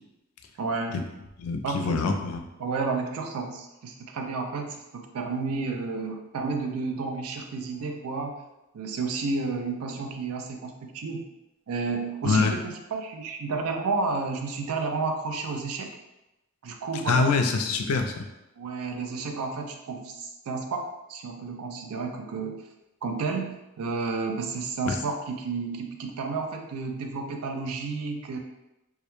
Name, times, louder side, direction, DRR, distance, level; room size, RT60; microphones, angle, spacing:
voice 1, 0.6-1.0 1.6-2.0 2.6-8.3 8.7-11.2 11.7-15.9 16.6-17.4 18.6-22.6 23.0-28.4, right 4 dB, 80° right, 3 dB, 0.4 m, -31 dB
voice 2, 1.4-2.4 12.2-12.5 17.1-18.2 24.9-25.0, left 4 dB, 80° left, 5 dB, 0.4 m, -24 dB
2.3 x 2.1 x 3.0 m, 0.95 s
head